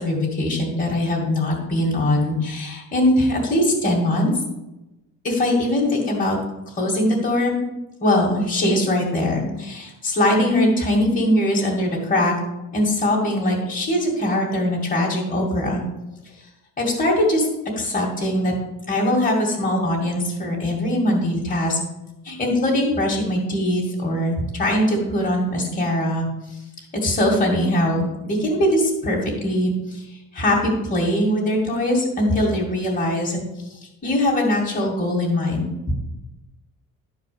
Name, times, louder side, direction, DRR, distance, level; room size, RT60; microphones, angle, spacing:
voice 1, 0.0-4.3 5.2-6.4 6.8-7.6 8.0-12.3 12.7-15.8 16.8-17.5 17.8-18.5 18.9-21.8 22.2-26.3 27.0-30.0 30.3-33.4 34.0-35.9, left 1 dB, 25° left, -3 dB, 2.2 m, -21 dB
12.0 x 4.7 x 6.8 m, 0.99 s
cardioid pair, 160°, 34 cm